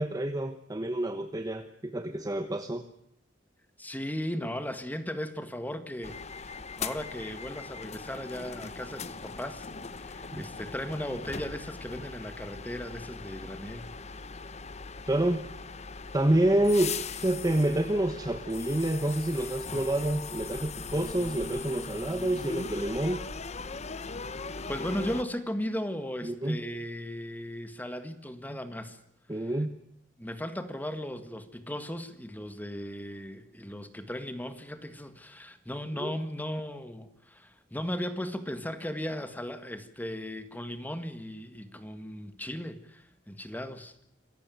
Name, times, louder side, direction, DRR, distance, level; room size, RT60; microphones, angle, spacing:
voice 1, 0.0-2.9 10.3-10.5 15.1-15.4 16.1-23.2 26.2-26.6 28.5-28.6 29.3-29.7 35.9-36.2, right 1 dB, 20° right, 8 dB, 1.1 m, -28 dB
voice 2, 3.8-9.7 9.9-13.9 24.7-29.0 29.3-29.5 30.2-43.9, equal, 10° left, 9 dB, 1.7 m, -37 dB
sound 1, 6.0-25.2, left 4 dB, 35° left, 1.0 m, -40 dB
26.5 x 15.5 x 9.4 m, 0.76 s
head